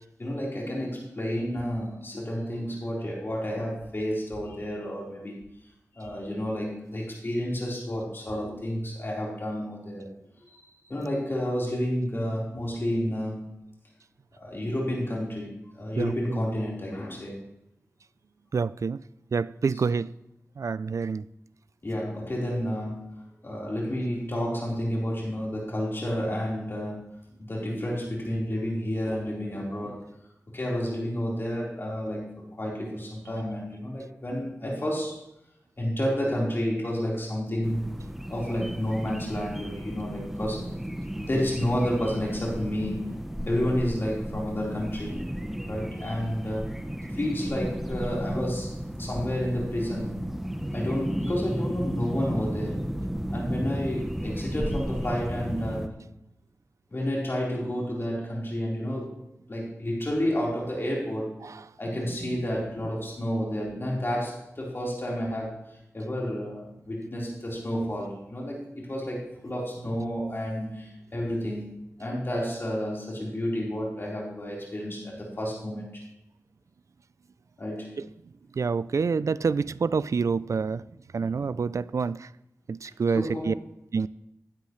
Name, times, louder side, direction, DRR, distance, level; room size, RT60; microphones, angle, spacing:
voice 1, 0.2-5.4 5.9-10.1 10.8-13.4 14.4-17.4 21.8-23.0 23.4-27.0 27.4-30.0 30.5-32.3 32.6-35.2 35.8-37.9 38.3-40.7 41.2-43.1 43.5-45.2 45.7-46.8 47.1-50.2 50.7-52.8 53.3-55.9 56.9-59.2 59.5-61.4 61.8-65.6 65.9-71.7 72.0-76.0 77.6-77.9 83.1-83.6, equal, 45° left, 4.2 m, -30 dB
voice 2, 16.0-16.4 18.5-19.0 19.3-20.1 20.6-21.2 61.4-61.5 62.2-62.4 78.6-80.8 81.1-82.3 82.7-83.5 83.9-84.1, right 5 dB, 70° right, 0.4 m, -27 dB
sound 1, 37.6-55.9, equal, 5° right, 0.9 m, -34 dB
15.5 x 12.0 x 3.2 m
wide cardioid pair, 85°, 5 cm